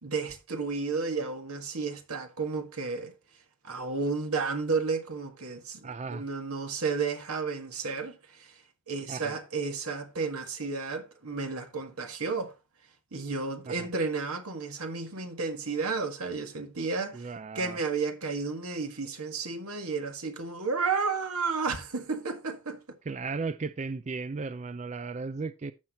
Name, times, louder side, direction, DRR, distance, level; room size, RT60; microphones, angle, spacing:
voice 1, 0.0-3.1 3.6-8.5 8.9-12.5 13.1-17.3 17.5-22.8, right 4 dB, 90° right, 1.8 m, -32 dB
voice 2, 5.8-6.2 9.1-9.4 13.7-13.9 17.1-17.8 23.1-25.7, right 4 dB, 30° right, 0.4 m, -35 dB
14.5 x 5.9 x 3.0 m
head